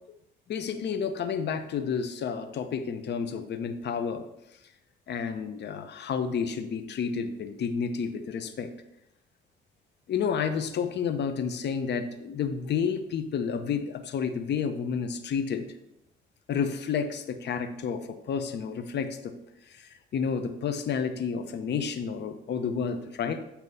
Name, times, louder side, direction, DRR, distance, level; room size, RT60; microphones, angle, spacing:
voice 1, 0.5-4.2 5.1-8.7 10.1-15.7 16.5-19.4 19.7-23.4, left 6 dB, 60° left, 8 dB, 0.8 m, -30 dB
8.2 x 3.0 x 5.4 m, 0.85 s
cardioid pair, 90°, 20 cm